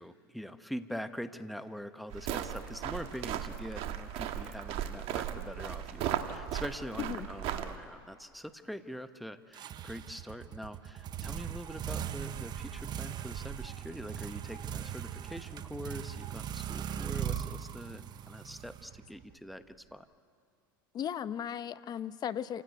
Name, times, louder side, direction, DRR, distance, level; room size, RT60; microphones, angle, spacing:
voice 1, 0.0-20.1, equal, ahead, 10 dB, 1.1 m, -43 dB
sound 1, 2.1-7.8, right 10 dB, 55° right, 1.6 m, -36 dB
sound 2, 9.5-19.3, right 9 dB, 35° right, 0.9 m, -39 dB
voice 2, 20.9-22.6, left 9 dB, 35° left, 15 dB, 0.8 m, -36 dB
28.5 x 16.5 x 9.3 m, 2.3 s
hypercardioid pair, 100°, 12 cm